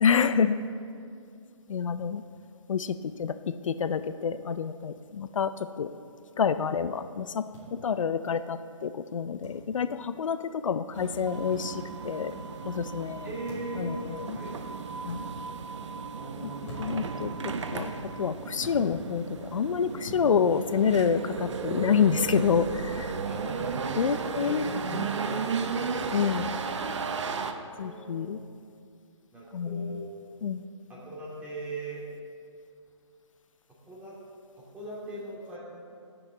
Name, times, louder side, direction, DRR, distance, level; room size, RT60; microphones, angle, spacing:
voice 1, 0.0-0.6 1.7-2.2 2.7-5.9 6.4-12.4 12.7-13.3 13.8-14.4 15.0-15.3 16.4-16.5 16.8-17.9 18.2-23.2 24.0-24.6 24.9-25.0 26.1-26.6 27.8-28.4 29.5-30.0 30.4-30.6, left 6 dB, 80° left, 12 dB, 0.5 m, -28 dB
sound 1, 7.5-7.7 9.4-9.6 11.5-11.7 13.5-13.8 15.0-15.2 16.6-17.1 18.6-18.8 20.0-20.3 22.1-22.4, left 2 dB, 15° left, 2.7 m, -44 dB
sound 2, 10.9-27.5, right 5 dB, 65° right, 0.8 m, -34 dB
voice 2, 13.2-14.0 14.3-14.5 16.1-17.0 23.3-25.5 25.9-26.5 27.4-28.3 29.3-30.1 30.9-32.1 33.9-34.2 34.6-35.6, right 2 dB, 10° right, -8 dB, 2.6 m, -40 dB
17.0 x 6.8 x 3.9 m, 2.3 s
hypercardioid pair, 155°, 17 cm